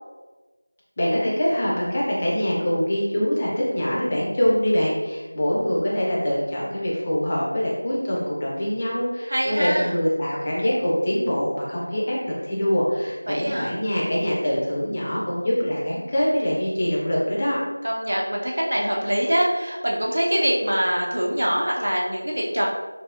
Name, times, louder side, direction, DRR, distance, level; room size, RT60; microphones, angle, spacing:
voice 1, 1.0-17.6, equal, 20° left, -6 dB, 0.4 m, -24 dB
voice 2, 9.3-9.9 13.3-13.7 17.8-22.7, equal, 60° right, -2 dB, 0.6 m, -24 dB
3.3 x 2.6 x 2.4 m, 1.3 s
figure-of-eight pair, 175°, 0 cm